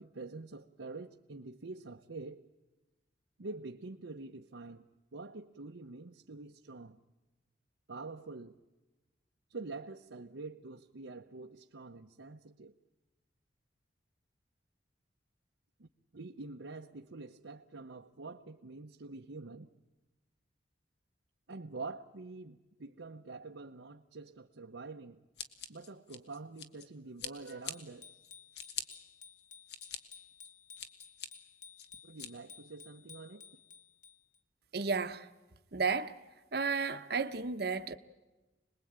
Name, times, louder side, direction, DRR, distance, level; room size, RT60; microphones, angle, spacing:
voice 1, 0.0-2.4 3.4-7.0 7.9-8.5 9.5-12.7 15.8-19.7 21.5-25.2 25.7-28.1 32.0-33.4, right 3 dB, 80° right, 0.9 m, -46 dB
Scissors, 25.4-26.9 27.2-27.7 28.2-28.8 29.4-30.0 30.4-31.3 31.8-32.3, left 7 dB, 60° left, 1.7 m, -42 dB
Bicycle bell, 27.7-34.4, left 7 dB, 40° left, 1.4 m, -55 dB
voice 2, 34.7-35.3 35.7-36.2 36.5-37.9, right 5 dB, 55° right, 1.0 m, -33 dB
26.5 x 20.5 x 8.8 m
head